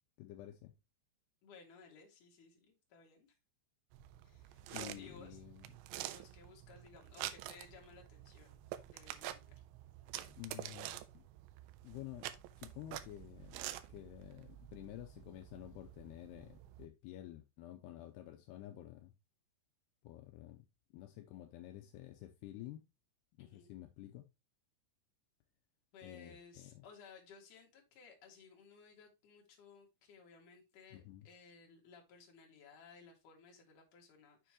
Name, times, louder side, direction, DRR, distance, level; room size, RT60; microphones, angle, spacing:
voice 1, 0.2-0.7 4.7-5.7 10.3-11.2 11.8-19.1 20.0-20.7 20.9-22.8 23.4-24.3 26.0-26.8 30.9-31.3, left 14 dB, 80° left, 2.4 m, -51 dB
voice 2, 1.4-3.4 4.2-5.4 6.0-9.6 23.4-23.7 25.9-34.5, left 5 dB, 50° left, 3.0 m, -59 dB
sound 1, 3.9-16.9, right 13 dB, 85° right, 2.8 m, -48 dB
7.1 x 6.9 x 2.9 m
omnidirectional pair, 5.2 m